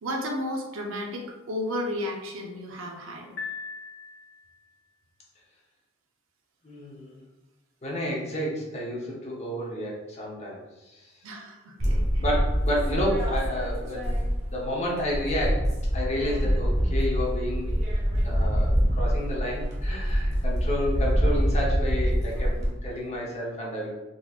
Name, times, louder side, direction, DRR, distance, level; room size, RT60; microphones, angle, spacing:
voice 1, 0.0-3.3 11.2-12.2 20.5-20.6 22.3-22.6, left 1 dB, 75° right, 1 dB, 0.7 m, -33 dB
Piano, 3.4-4.7, left 5 dB, 65° left, 1.1 m, -39 dB
voice 2, 6.6-7.2 7.8-10.6 10.9-11.1 11.8-14.1 14.4-15.7 15.9-17.7 18.2-23.9, equal, 35° left, -3 dB, 0.8 m, -31 dB
sound 1, 11.8-14.7 15.0-22.7, equal, 35° right, 0.8 m, -25 dB
3.9 x 3.0 x 2.4 m, 1.1 s
head